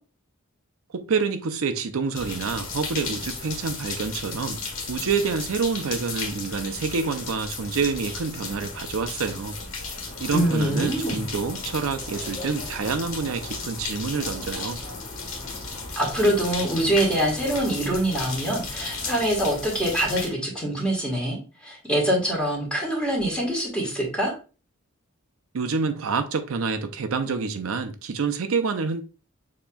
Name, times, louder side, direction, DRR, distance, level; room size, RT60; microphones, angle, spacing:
voice 1, 0.9-4.6 4.9-9.5 10.2-14.8 25.5-29.0, right 5 dB, 80° right, 0.5 m, -27 dB
sound 1, 2.1-20.3, left 4 dB, 70° left, 1.6 m, -35 dB
sound 2, 10.1-19.2, left 1 dB, 20° left, 1.8 m, -42 dB
voice 2, 10.3-11.2 15.9-24.3, right 1 dB, 5° left, 1.5 m, -24 dB
6.8 x 2.9 x 2.3 m
head